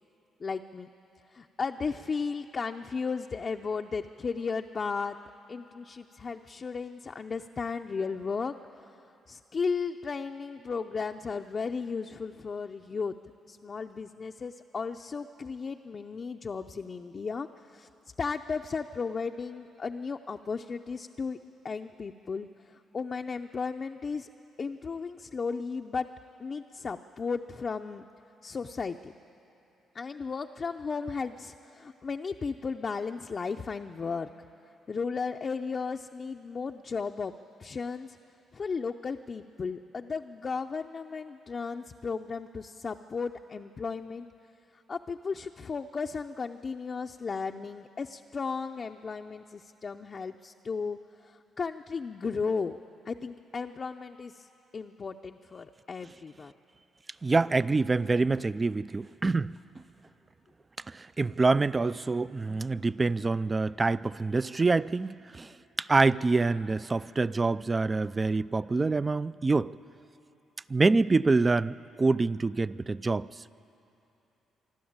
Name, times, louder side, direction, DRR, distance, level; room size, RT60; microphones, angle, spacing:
voice 1, 0.4-0.9 1.3-5.2 5.5-8.9 9.3-13.1 13.5-17.5 17.7-17.9 18.2-21.4 21.6-22.5 22.9-24.3 24.6-26.1 26.4-28.0 28.4-29.1 29.9-34.3 34.9-37.3 37.6-38.2 38.5-44.3 44.9-52.8 53.1-54.5 54.7-56.5, left 5 dB, 40° left, 3 dB, 0.6 m, -35 dB
voice 2, 57.2-59.5 60.9-65.5 65.8-69.7 70.7-73.3, right 3 dB, 25° right, 18 dB, 0.4 m, -26 dB
25.5 x 12.0 x 8.8 m, 3.0 s
cardioid pair, 90°, 0 cm